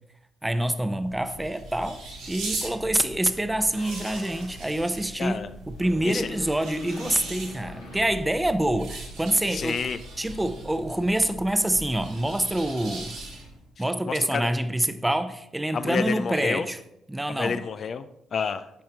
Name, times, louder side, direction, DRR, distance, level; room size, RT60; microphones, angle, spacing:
voice 1, 0.4-2.0 2.3-9.8 10.2-13.2 13.8-16.8 17.1-17.6, right 1 dB, 10° right, 0.6 m, -26 dB
sound 1, 0.9-13.7, right 2 dB, 75° right, 2.4 m, -40 dB
sound 2, 3.7-4.6 5.7-8.8, left 1 dB, 85° left, 1.6 m, -42 dB
voice 2, 5.2-5.5 6.0-6.3 9.5-10.0 13.8-14.5 15.7-16.7 17.3-18.7, left 6 dB, 50° left, 0.3 m, -29 dB
11.0 x 4.3 x 3.8 m
hypercardioid pair, 45°, 0 cm